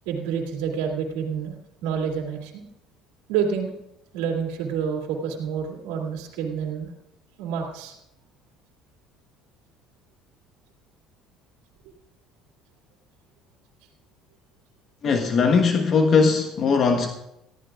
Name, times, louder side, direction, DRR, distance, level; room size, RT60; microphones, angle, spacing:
voice 1, 0.0-1.5 1.8-2.6 3.3-3.7 4.1-6.9 7.4-7.9, right 7 dB, 85° right, 0 dB, 2.6 m, -28 dB
voice 2, 15.0-17.1, left 5 dB, 50° left, 5 dB, 1.2 m, -19 dB
19.0 x 14.0 x 2.5 m, 0.82 s
supercardioid pair, 85°, 0 cm